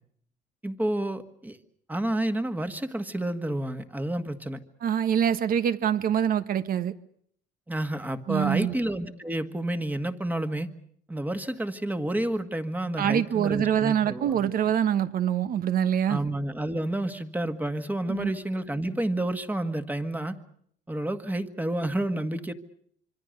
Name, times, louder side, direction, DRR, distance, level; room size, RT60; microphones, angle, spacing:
voice 1, 0.6-1.6 1.9-4.6 7.7-10.7 11.1-14.5 16.1-20.4 20.9-22.5, right 1 dB, 10° right, 1.7 m, -30 dB
voice 2, 4.8-6.9 8.3-8.7 13.0-16.2 18.1-18.3, right 9 dB, 60° right, 1.4 m, -25 dB
25.5 x 25.0 x 6.6 m
cardioid pair, 110°, 17 cm